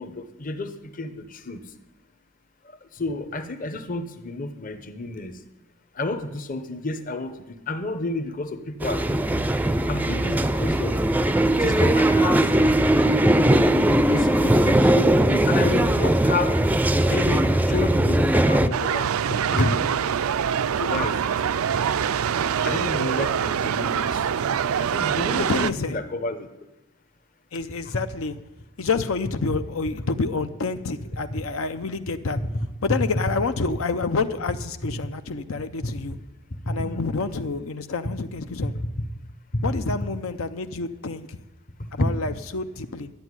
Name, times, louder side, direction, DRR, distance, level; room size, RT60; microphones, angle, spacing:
voice 1, 0.0-1.6 2.9-5.3 6.0-9.4 9.9-11.0 11.5-12.4 14.1-16.6 17.1-19.9 20.8-21.3 22.6-24.2 24.8-26.5 36.7-37.0 38.7-38.9 39.5-39.6 39.9-40.0 42.0-42.1, left 2 dB, 40° left, 0.9 m, -30 dB
sound 1, 8.8-18.7, right 1 dB, 10° right, 0.4 m, -20 dB
sound 2, 18.7-25.7, right 8 dB, 90° right, 0.4 m, -24 dB
voice 2, 25.5-26.0 27.5-28.4 28.8-32.4 32.8-36.2 36.7-38.7 39.6-41.4 41.9-43.1, left 4 dB, 80° left, 0.6 m, -28 dB
11.5 x 8.1 x 9.7 m
head